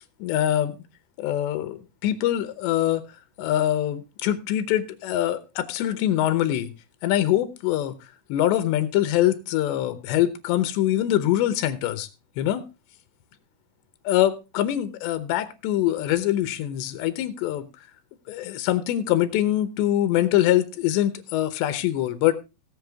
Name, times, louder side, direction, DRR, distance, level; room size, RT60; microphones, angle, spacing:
voice 1, 0.2-0.8 1.2-3.0 3.4-6.7 7.0-8.0 8.3-12.1 12.4-12.6 14.0-17.7 18.3-22.3, left 13 dB, 85° left, 3.2 m, -24 dB
17.5 x 7.5 x 3.5 m
omnidirectional pair, 4.9 m